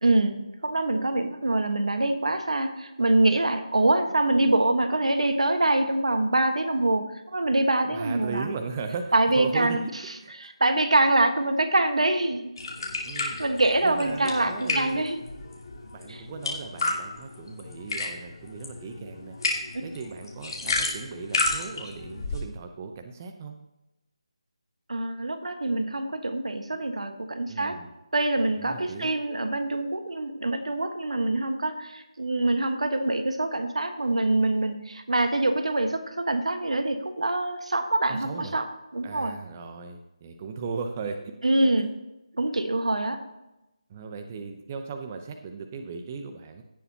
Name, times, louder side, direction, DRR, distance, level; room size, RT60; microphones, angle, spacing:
voice 1, 0.0-8.5 9.1-9.8 10.4-12.5 13.2-15.2 16.1-16.2 24.9-27.8 28.1-38.7 38.9-39.3 41.4-41.9 42.4-43.2, right 2 dB, 80° right, 7 dB, 1.5 m, -25 dB
voice 2, 7.8-9.8 10.2-10.5 13.0-13.4 13.8-15.1 15.9-19.4 19.8-23.6 27.4-27.9 28.6-29.1 38.1-38.5 39.0-41.7 43.9-46.6, right 5 dB, 25° right, 6 dB, 0.7 m, -37 dB
sound 1, 12.6-22.4, left 3 dB, 50° left, 2.7 m, -32 dB
17.5 x 6.9 x 2.9 m, 0.93 s
figure-of-eight pair, 165°, 3 cm